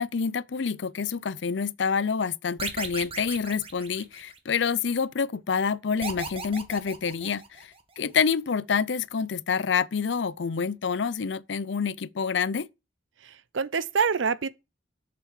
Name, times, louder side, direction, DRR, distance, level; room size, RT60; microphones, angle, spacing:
voice 1, 0.0-7.4 8.0-12.7, left 6 dB, 70° left, 0.5 m, -27 dB
sound 1, 2.6-4.6 6.0-7.8, right 4 dB, 30° right, 1.3 m, -37 dB
voice 2, 13.2-14.5, right 5 dB, 90° right, 0.7 m, -26 dB
6.8 x 6.6 x 7.3 m
head